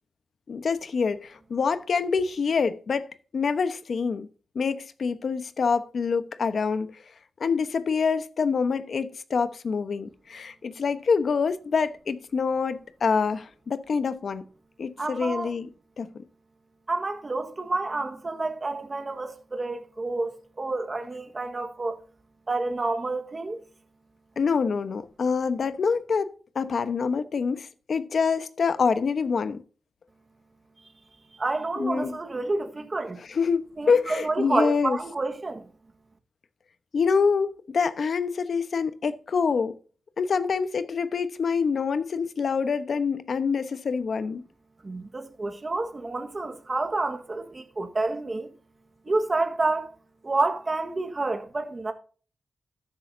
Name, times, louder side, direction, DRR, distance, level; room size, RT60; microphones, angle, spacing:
voice 1, 0.5-4.3 4.5-6.9 7.4-14.4 14.8-15.7 16.0-16.2 24.4-29.6 31.8-32.2 33.3-35.0 36.9-39.8 40.2-44.4, left 5 dB, 70° left, 1.0 m, -26 dB
voice 2, 15.0-15.5 16.9-22.0 22.5-23.6 30.8-30.9 31.3-33.2 33.8-35.6 44.8-48.5 49.0-50.0 50.2-51.9, right 3 dB, 35° right, 1.5 m, -29 dB
13.0 x 10.5 x 2.7 m
cardioid pair, 85°, 0 cm